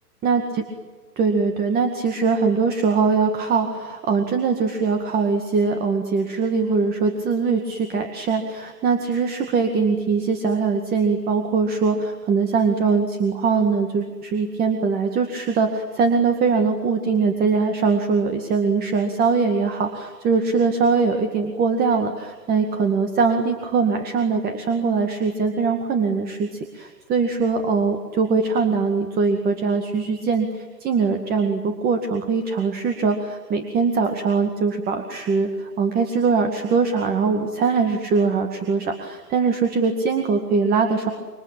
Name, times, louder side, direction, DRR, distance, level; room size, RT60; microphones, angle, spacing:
voice 1, 0.2-0.6 1.2-41.1, right 4 dB, 20° right, 6 dB, 2.1 m, -22 dB
27.0 x 24.5 x 8.8 m, 1.4 s
hypercardioid pair, 130°, 49 cm